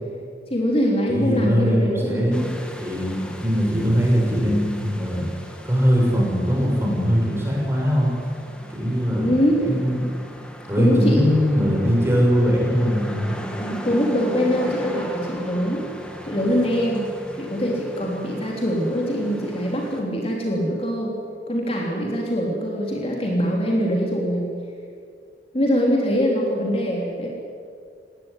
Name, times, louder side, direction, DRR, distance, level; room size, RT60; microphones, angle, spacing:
voice 1, 0.5-2.5 9.1-9.6 10.8-11.3 13.6-15.8 16.2-17.1 17.4-21.1 21.5-24.5 25.5-27.3, equal, 35° left, -1 dB, 3.2 m, -23 dB
voice 2, 1.1-2.5 2.8-5.3 5.6-8.1 8.7-10.0 10.7-13.4, equal, 15° right, -2 dB, 6.4 m, -21 dB
sound 1, 2.3-20.0, equal, 5° left, 2.1 m, -37 dB
19.5 x 18.0 x 9.8 m, 2.3 s
head